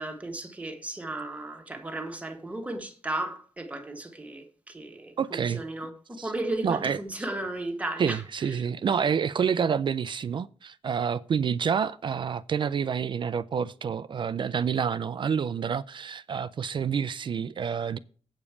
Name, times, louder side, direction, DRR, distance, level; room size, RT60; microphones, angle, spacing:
voice 1, 0.0-8.2 8.5-8.6, right 2 dB, 10° right, 1.3 m, -35 dB
voice 2, 5.2-5.6 6.2-6.3 6.6-7.0 8.0-18.0, right 7 dB, 45° right, 0.4 m, -28 dB
8.3 x 5.1 x 7.2 m
wide cardioid pair, 165°, 12 cm